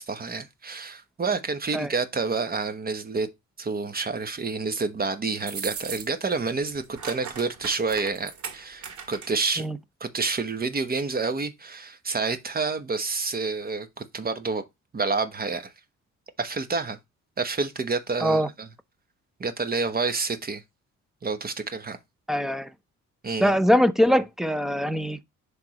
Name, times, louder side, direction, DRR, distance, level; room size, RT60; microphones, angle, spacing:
voice 1, 0.0-3.3 3.6-9.7 10.0-14.6 14.9-15.7 16.4-17.0 17.4-18.7 19.4-20.6 21.2-22.0 23.2-23.5, right 4 dB, 30° right, 1.1 m, -28 dB
sound 1, 5.4-6.3 6.6-9.5, right 6 dB, 75° right, 2.3 m, -38 dB
voice 2, 22.3-22.7 23.4-25.2, equal, ahead, 0.6 m, -22 dB
10.5 x 3.6 x 3.0 m
cardioid pair, 90°, 30 cm